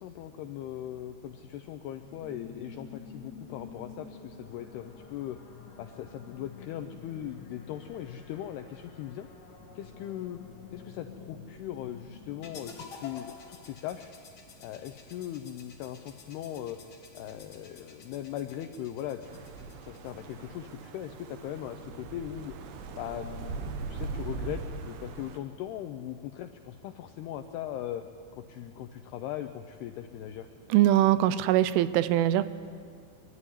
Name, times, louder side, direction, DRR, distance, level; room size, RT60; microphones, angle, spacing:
voice 1, 0.0-5.4 5.8-9.3 9.8-10.4 10.7-14.1 14.6-16.8 17.1-22.5 22.9-28.0 28.3-30.5, left 11 dB, 85° left, 7 dB, 2.3 m, -39 dB
sound 1, 2.0-12.9, left 5 dB, 40° left, 3.1 m, -49 dB
sound 2, 12.4-20.5, left 5 dB, 65° left, 1.2 m, -51 dB
sound 3, 19.2-25.4, right 4 dB, 70° right, 2.9 m, -40 dB
voice 2, 30.7-32.4, right 13 dB, 90° right, 14 dB, 3.2 m, -22 dB
23.0 x 12.5 x 9.9 m, 2.2 s
omnidirectional pair, 5.5 m